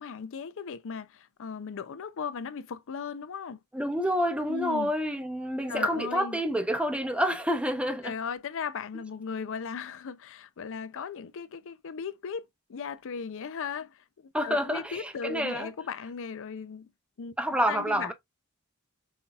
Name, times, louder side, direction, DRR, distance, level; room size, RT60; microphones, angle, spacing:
voice 1, 0.0-3.6 4.5-4.9 5.7-6.4 8.0-16.9 17.2-17.3 17.7-18.1, left 6 dB, 60° left, 0.5 m, -37 dB
voice 2, 3.7-8.1 14.3-15.7 17.4-18.1, equal, 5° right, 0.6 m, -28 dB
5.6 x 2.7 x 2.3 m
head